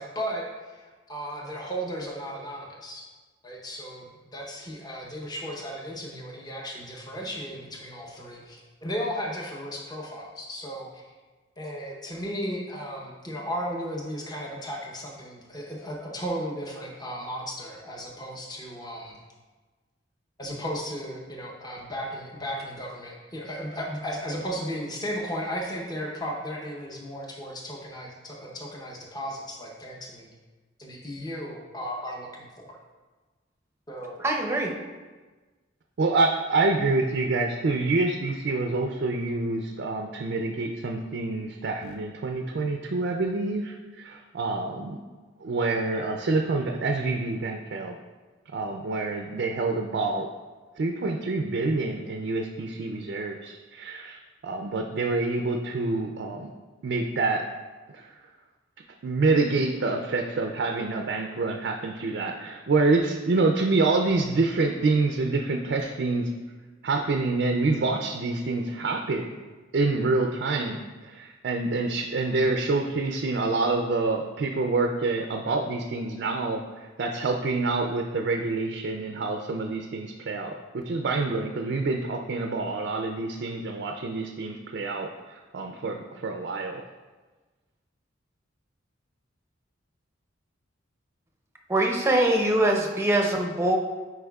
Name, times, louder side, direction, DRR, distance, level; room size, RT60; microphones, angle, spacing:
voice 1, 0.0-3.1 3.4-11.0 11.6-19.2 20.4-30.3 30.8-32.8 33.9-34.2, equal, 20° left, -2 dB, 0.8 m, -35 dB
voice 2, 34.2-34.7 91.7-93.8, right 1 dB, 15° right, 1 dB, 0.6 m, -23 dB
voice 3, 36.0-45.0 45.4-48.0 48.5-50.3 50.8-56.5 56.8-57.5 57.9-58.3 59.0-66.3 66.8-69.3 69.7-86.8, right 3 dB, 55° right, 3 dB, 0.4 m, -27 dB
9.8 x 4.7 x 2.3 m, 1.3 s
head